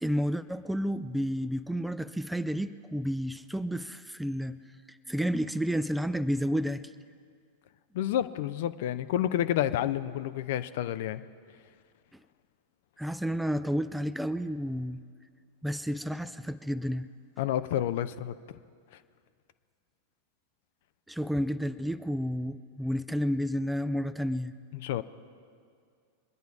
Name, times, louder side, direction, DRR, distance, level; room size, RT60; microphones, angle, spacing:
voice 1, 0.0-4.6 5.1-6.8 13.0-15.0 15.6-17.1 21.1-24.5, equal, 5° right, 12 dB, 0.4 m, -31 dB
voice 2, 7.9-11.2 17.4-18.3 24.7-25.0, left 11 dB, 50° left, 13 dB, 0.5 m, -29 dB
23.5 x 10.5 x 4.7 m, 2.2 s
figure-of-eight pair, 90°, 0 cm